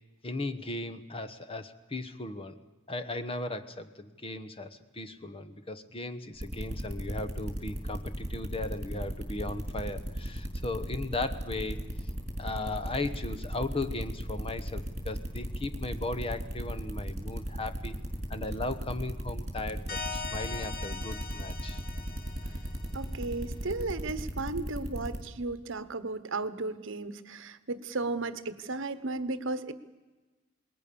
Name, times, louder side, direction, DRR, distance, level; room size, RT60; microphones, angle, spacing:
voice 1, 0.2-2.6 2.9-11.8 12.4-18.0 18.3-21.8, left 2 dB, 25° left, 10 dB, 1.1 m, -37 dB
sound 1, 6.4-25.2, equal, 35° right, 5.2 m, -35 dB
sound 2, 19.9-23.3, left 4 dB, 50° left, 2.5 m, -41 dB
voice 2, 22.9-29.7, right 3 dB, 65° right, 13 dB, 1.1 m, -34 dB
27.5 x 20.5 x 7.0 m, 1.2 s
head